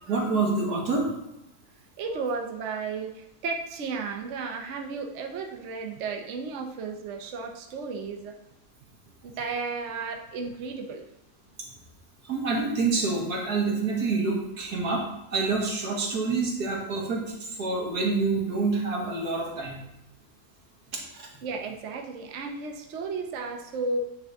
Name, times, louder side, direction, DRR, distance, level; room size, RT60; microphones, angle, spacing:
voice 1, 0.0-1.1 12.3-15.0 15.3-19.8 21.1-21.3, right 3 dB, 90° right, -2 dB, 2.1 m, -27 dB
voice 2, 2.0-8.3 9.2-11.0 21.4-24.0, right 4 dB, 55° right, 2 dB, 1.0 m, -33 dB
9.2 x 4.0 x 3.5 m, 0.87 s
omnidirectional pair, 1.6 m